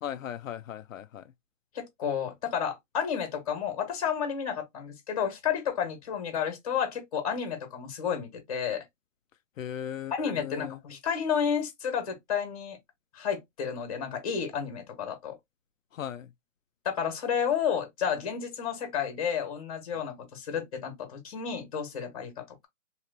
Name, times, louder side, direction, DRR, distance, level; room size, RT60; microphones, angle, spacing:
voice 1, 0.0-1.2 9.6-10.8 15.9-16.3, left 10 dB, 80° left, 0.5 m, -37 dB
voice 2, 1.7-8.8 10.1-12.8 13.1-15.4 16.8-22.7, left 7 dB, 30° left, 1.3 m, -31 dB
3.1 x 2.9 x 2.7 m
hypercardioid pair, 175°, 39 cm